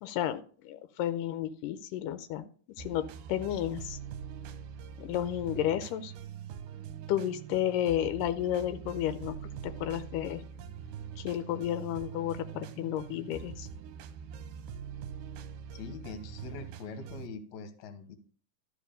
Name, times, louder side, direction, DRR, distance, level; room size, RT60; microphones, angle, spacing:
voice 1, 0.0-2.5 2.8-4.0 5.0-6.1 7.1-10.4 11.2-13.7, left 11 dB, 90° left, 10 dB, 2.2 m, -32 dB
sound 1, 2.8-17.3, right 8 dB, 80° right, 2.2 m, -43 dB
voice 2, 15.7-18.2, left 4 dB, 70° left, 9 dB, 2.3 m, -43 dB
12.5 x 5.0 x 5.1 m, 0.42 s
omnidirectional pair, 3.8 m